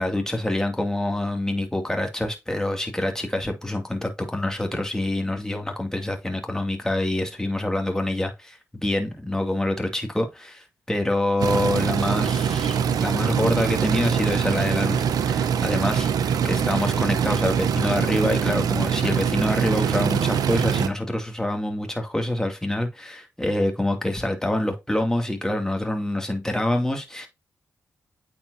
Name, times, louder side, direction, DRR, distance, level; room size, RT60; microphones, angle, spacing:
voice 1, 0.0-27.3, left 1 dB, 10° left, 2.3 m, -26 dB
sound 1, 11.4-20.9, right 7 dB, 85° right, 0.7 m, -23 dB
8.7 x 4.5 x 2.7 m
cardioid pair, 55°, 6 cm